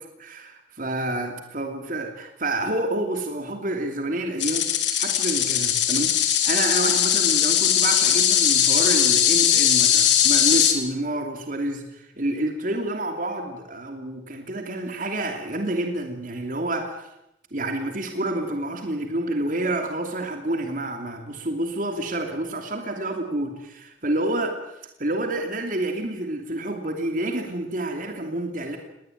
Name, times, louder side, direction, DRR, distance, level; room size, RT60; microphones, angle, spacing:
voice 1, 0.2-0.5 0.8-4.7 5.0-17.1 17.5-24.6 25.0-28.8, right 1 dB, 45° right, 4 dB, 2.8 m, -28 dB
sound 1, 4.4-10.7, left 10 dB, 85° left, 3.3 m, -20 dB
21.0 x 18.5 x 9.2 m, 0.85 s
head